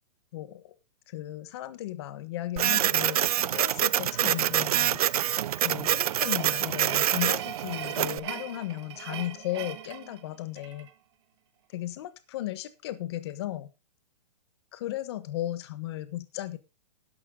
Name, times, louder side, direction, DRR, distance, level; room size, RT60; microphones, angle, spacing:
voice 1, 0.3-0.7 1.1-3.2 3.5-5.0 5.6-10.9 11.7-13.7 14.7-16.6, left 14 dB, 40° left, 12 dB, 1.2 m, -35 dB
Printer, 2.6-8.2, right 11 dB, 65° right, 0.5 m, -26 dB
sound 1, 5.4-10.9, right 11 dB, 40° right, 1.4 m, -41 dB
12.5 x 11.5 x 3.8 m, 0.28 s
hypercardioid pair, 165°, 21 cm